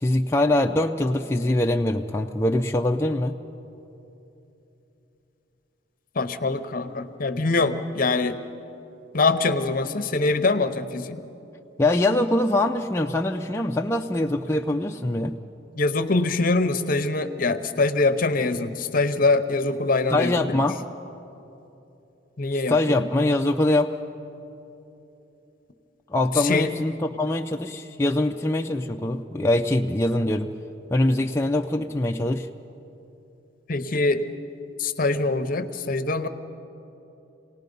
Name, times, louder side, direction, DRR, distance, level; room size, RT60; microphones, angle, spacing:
voice 1, 0.0-3.4 11.8-15.4 20.1-20.8 22.7-23.9 26.1-30.5 30.9-32.5, left 1 dB, 15° left, 2 dB, 0.4 m, -23 dB
voice 2, 6.1-8.4 9.1-11.2 15.8-20.6 22.4-23.1 26.3-26.7 33.7-34.2 34.8-36.3, left 3 dB, 45° left, 10 dB, 0.8 m, -23 dB
27.0 x 18.5 x 5.3 m, 2.9 s
head